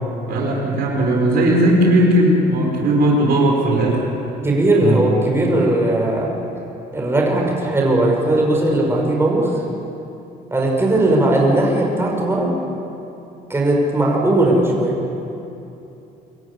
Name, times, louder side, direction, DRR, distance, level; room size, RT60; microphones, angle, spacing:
voice 1, 0.3-4.0 4.8-5.0, right 1 dB, 65° right, -1 dB, 5.4 m, -17 dB
voice 2, 4.4-6.3 6.9-9.6 10.5-12.6 13.5-15.0, right 1 dB, 15° right, -1 dB, 5.3 m, -18 dB
25.0 x 14.0 x 9.9 m, 2.9 s
cardioid pair, 110°, 17 cm